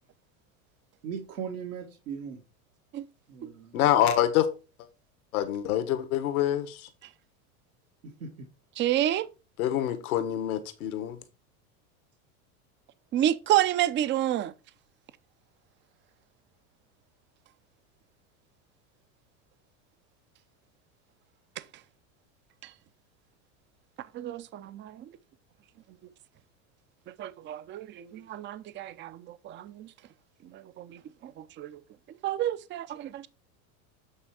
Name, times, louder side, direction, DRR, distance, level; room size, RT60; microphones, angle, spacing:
voice 1, 1.0-2.4 3.3-3.8 8.0-8.5, right 7 dB, 85° right, 1.8 m, -38 dB
voice 2, 3.7-4.5 5.3-6.9 9.6-11.2, left 11 dB, 80° left, 1.5 m, -26 dB
voice 3, 8.8-9.3 13.1-14.5 22.6-22.7 24.1-25.0 27.2-29.9 30.5-31.8 32.2-33.3, right 12 dB, 25° right, 0.5 m, -30 dB
8.5 x 3.4 x 4.8 m
hypercardioid pair, 105°, 43 cm